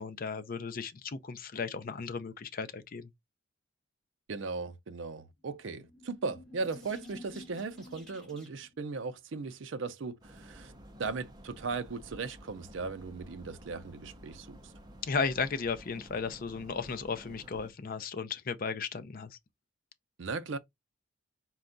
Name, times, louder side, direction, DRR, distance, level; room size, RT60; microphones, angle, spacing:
voice 1, 0.0-3.1 15.0-19.3, left 5 dB, 45° left, 0.5 m, -35 dB
voice 2, 4.3-10.7 11.0-14.6 20.2-20.6, right 4 dB, 60° right, 0.5 m, -37 dB
sound 1, 5.6-8.8, left 1 dB, 5° left, 1.3 m, -51 dB
sound 2, 10.2-17.7, equal, 20° right, 0.6 m, -52 dB
4.3 x 2.3 x 3.8 m
head